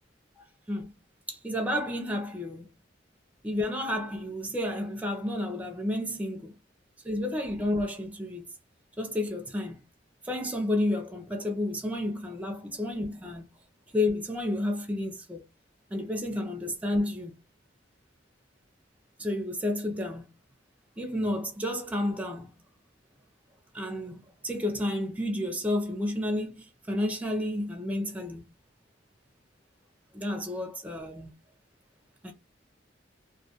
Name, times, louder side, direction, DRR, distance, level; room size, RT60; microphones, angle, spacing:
voice 1, 1.3-2.7 3.4-6.5 7.0-8.5 9.0-9.8 10.2-13.5 13.9-15.4 15.9-17.3 19.2-20.2 21.0-22.5 23.7-28.5 30.1-31.3 32.2-32.3, left 1 dB, 10° right, 0.4 m, -31 dB
2.2 x 2.1 x 2.7 m
head